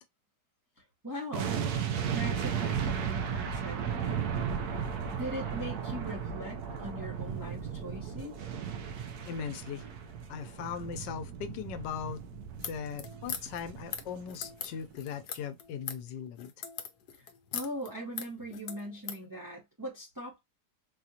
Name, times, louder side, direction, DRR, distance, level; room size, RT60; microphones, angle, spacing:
voice 1, 0.8-1.5 2.0-3.8 5.1-8.4 17.2-17.3 17.5-20.4, equal, 15° right, 0.9 m, -40 dB
sound 1, 1.3-14.5 14.8-14.9, right 7 dB, 70° right, 1.1 m, -35 dB
voice 2, 9.3-9.8 10.3-12.2 12.7-16.5, left 7 dB, 85° left, 1.3 m, -39 dB
sound 2, 12.5-19.2, left 8 dB, 70° left, 1.2 m, -41 dB
4.3 x 2.5 x 2.8 m
omnidirectional pair, 1.9 m